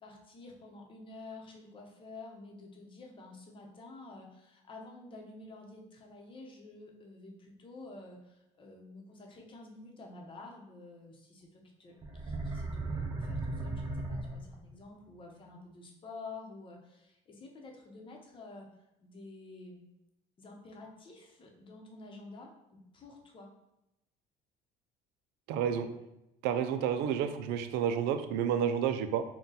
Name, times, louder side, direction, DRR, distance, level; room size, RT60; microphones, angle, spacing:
voice 1, 0.0-18.7 19.0-19.8 20.4-23.5, left 3 dB, 30° left, 0 dB, 0.8 m, -50 dB
sound 1, 12.0-14.8, right 2 dB, 25° right, 0.7 m, -36 dB
voice 2, 25.5-25.9 26.4-29.2, right 8 dB, 80° right, 8 dB, 0.4 m, -30 dB
3.8 x 2.3 x 4.0 m, 0.88 s
cardioid pair, 120°, 16 cm